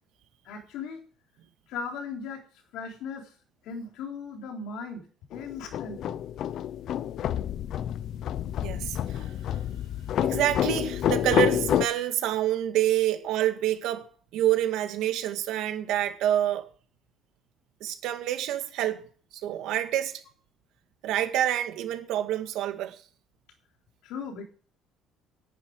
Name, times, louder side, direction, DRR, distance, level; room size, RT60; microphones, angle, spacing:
voice 1, 0.4-1.1 1.7-2.4 2.7-3.3 3.6-5.0 5.3-6.2 24.0-24.4, left 5 dB, 70° left, 3.7 m, -37 dB
sound 1, 5.3-11.9, left 11 dB, 50° left, 0.6 m, -28 dB
voice 2, 8.6-9.6 10.2-16.7 17.8-19.1 19.4-20.2 21.0-23.0, right 12 dB, 70° right, 2.0 m, -27 dB
11.0 x 10.0 x 4.8 m
cardioid pair, 150°, 0 cm